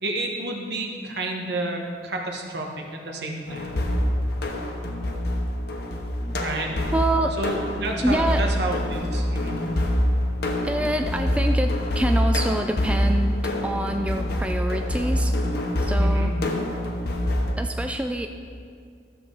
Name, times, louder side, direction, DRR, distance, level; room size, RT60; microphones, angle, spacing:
voice 1, 0.0-3.7 6.4-6.7 7.4-9.5 16.0-16.3, right 2 dB, 65° right, 1 dB, 1.3 m, -30 dB
sound 1, 3.5-17.5, left 1 dB, 65° left, 1.0 m, -25 dB
voice 2, 4.9-5.2 6.2-6.4 6.9-7.4 8.0-8.5 10.6-13.4 13.6-15.4 15.8-16.4 17.6-18.3, right 1 dB, 5° right, 5 dB, 0.3 m, -26 dB
13.0 x 7.1 x 3.9 m, 2.2 s
head